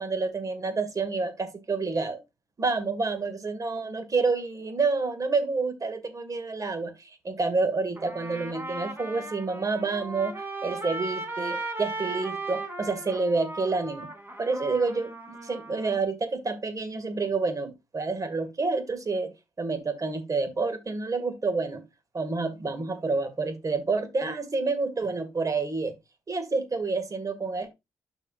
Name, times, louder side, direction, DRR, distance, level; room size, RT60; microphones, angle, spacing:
voice 1, 0.0-2.2 2.6-14.1 14.4-15.1 15.4-19.3 19.6-21.8 22.1-25.9 26.3-27.7, right 3 dB, 40° right, 2.1 m, -28 dB
Trumpet, 8.0-16.0, right 2 dB, 25° right, 3.1 m, -37 dB
12.0 x 5.0 x 2.5 m
hypercardioid pair, 40°, 9 cm